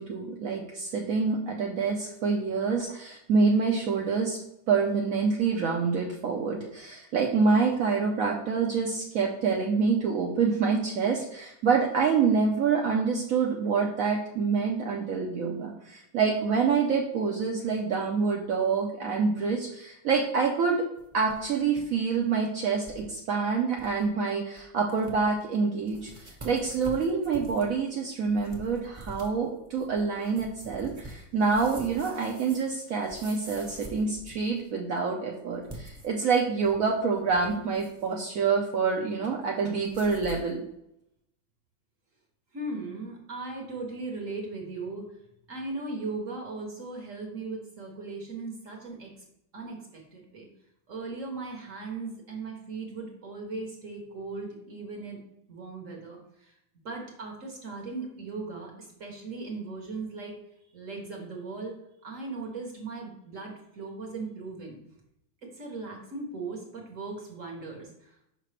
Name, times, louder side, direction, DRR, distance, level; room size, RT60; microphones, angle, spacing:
voice 1, 0.0-4.4 4.7-20.8 21.1-40.6, right 5 dB, 80° right, 0 dB, 0.7 m, -27 dB
sound 1, 21.0-21.8 22.1-22.2 22.8-23.0 23.5-23.6 23.8-24.1 24.6-24.7 24.9-25.4 25.9-34.7 35.5-36.8 37.2-38.1 39.8-40.5, right 1 dB, 20° right, 1.0 m, -46 dB
voice 2, 42.5-45.1 45.5-49.1 49.5-50.5 50.9-55.2 55.5-56.5 56.8-60.4 60.7-61.8 62.0-64.8 65.5-68.3, right 3 dB, 50° right, 0 dB, 1.1 m, -38 dB
5.7 x 5.1 x 3.2 m, 0.81 s
omnidirectional pair, 2.2 m